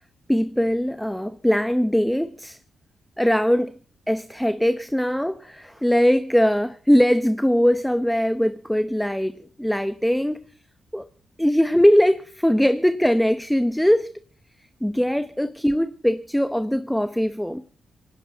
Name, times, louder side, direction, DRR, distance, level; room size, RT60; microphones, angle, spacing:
voice 1, 0.3-2.6 3.2-3.7 4.1-10.4 10.9-11.1 11.4-14.1 14.8-17.6, equal, 5° left, 0.8 m, -21 dB
19.5 x 17.0 x 4.0 m
cardioid pair, 80°, 0 cm